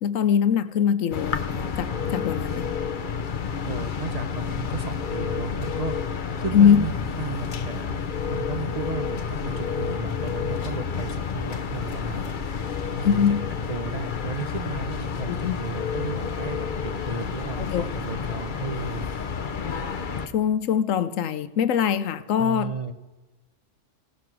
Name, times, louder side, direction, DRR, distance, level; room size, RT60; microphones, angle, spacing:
voice 1, 0.0-2.7 6.5-6.9 13.0-13.5 15.3-15.5 17.6-17.8 20.3-22.8, left 8 dB, 80° left, 13 dB, 1.1 m, -22 dB
sound 1, 1.1-20.3, left 6 dB, 45° left, 0.9 m, -30 dB
voice 2, 3.7-6.0 6.4-6.9 7.2-12.3 13.0-13.2 13.7-19.1 22.4-22.9, right 4 dB, 35° right, 7 dB, 0.8 m, -34 dB
17.0 x 10.5 x 6.2 m, 1.2 s
omnidirectional pair, 1.3 m